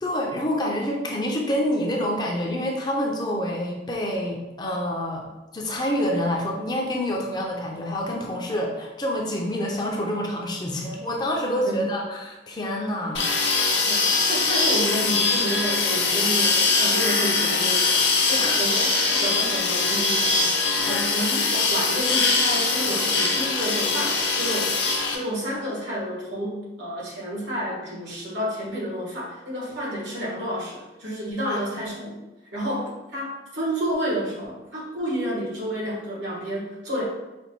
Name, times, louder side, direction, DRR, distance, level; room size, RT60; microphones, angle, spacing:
voice 1, 0.0-5.3 5.5-13.6 18.3-18.7 20.8-21.1 31.4-31.6, equal, 25° left, -1 dB, 0.4 m, -27 dB
voice 2, 11.6-12.0 13.9-18.0 18.3-32.2 32.5-37.0, equal, 85° right, -4 dB, 1.3 m, -30 dB
sound 1, 13.1-25.1, left 4 dB, 90° left, 0.7 m, -22 dB
5.1 x 2.2 x 2.9 m, 1.0 s
head